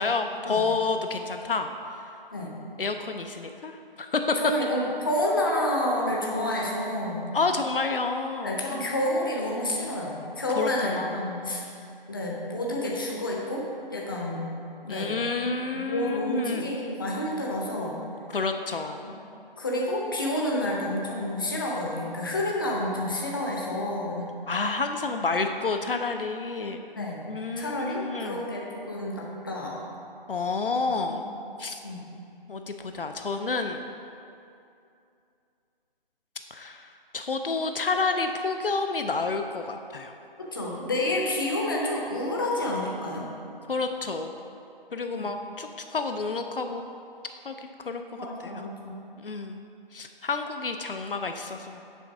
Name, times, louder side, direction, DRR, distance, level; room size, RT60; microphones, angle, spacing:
voice 1, 0.0-1.7 2.8-4.3 7.3-8.9 10.6-11.2 14.9-16.8 18.3-19.0 24.5-28.5 30.3-31.3 31.6-31.8 32.5-33.8 36.5-36.9 37.1-40.1 43.7-44.3 44.9-46.9 47.4-47.6 47.9-48.0 48.4-48.6 49.2-49.6 49.9-51.8, left 4 dB, 65° left, 5 dB, 0.5 m, -29 dB
voice 2, 4.4-7.3 8.4-11.6 12.1-13.6 13.9-14.5 14.8-15.1 15.7-18.0 19.0-19.1 19.6-24.3 27.0-27.2 27.6-29.8 31.1-31.2 31.8-32.0 40.4-43.3 45.1-45.3 48.2-48.9, left 1 dB, 20° left, -2 dB, 0.7 m, -29 dB
6.9 x 4.4 x 5.9 m, 2.6 s
figure-of-eight pair, 155°, 29 cm